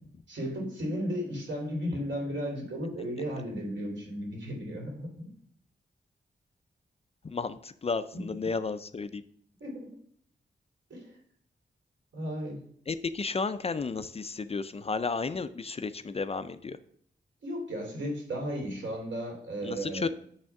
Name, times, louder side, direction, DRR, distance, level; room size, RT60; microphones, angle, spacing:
voice 1, 0.3-5.3 8.1-8.2 9.6-9.9 10.9-11.1 12.1-12.6 17.4-20.1, equal, 75° right, -1 dB, 2.9 m, -34 dB
voice 2, 7.2-9.2 12.9-16.8 19.6-20.1, left 4 dB, 35° left, 11 dB, 0.4 m, -33 dB
8.8 x 3.5 x 5.8 m, 0.64 s
wide cardioid pair, 140°, 19 cm